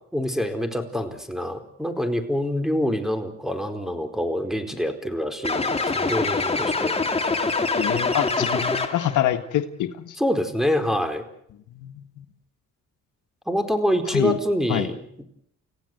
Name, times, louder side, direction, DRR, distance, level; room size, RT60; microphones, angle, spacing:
voice 1, 0.1-6.9 8.4-8.6 10.2-11.2 13.5-15.2, equal, ahead, 7 dB, 4.5 m, -26 dB
sound 1, 5.4-9.2, left 3 dB, 20° left, 2.9 m, -24 dB
voice 2, 7.8-10.2 11.7-12.3 14.1-14.4 14.7-14.9, left 12 dB, 80° left, 8 dB, 1.7 m, -26 dB
30.0 x 16.0 x 8.0 m, 0.72 s
cardioid pair, 90°, 30 cm